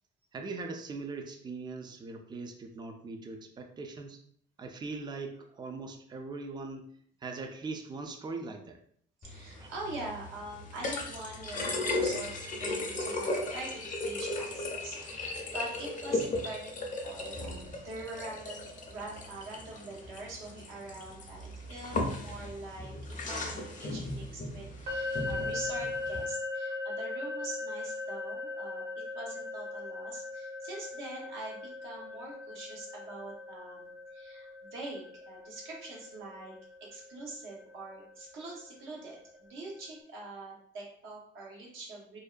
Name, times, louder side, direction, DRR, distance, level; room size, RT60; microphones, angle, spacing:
voice 1, 0.3-4.2 4.6-6.8 7.2-8.8 9.6-9.7 15.0-15.1, right 3 dB, 20° right, 5 dB, 0.3 m, -40 dB
sound 1, 9.2-26.3, left 2 dB, 40° left, 0.5 m, -37 dB
voice 2, 9.2-16.8 17.0-22.9 23.3-36.5 36.8-42.2, right 2 dB, 80° right, -3 dB, 0.9 m, -44 dB
sound 2, 24.9-38.7, left 3 dB, 60° right, 0.9 m, -39 dB
2.5 x 2.1 x 2.3 m, 0.63 s
cardioid pair, 90°, 20 cm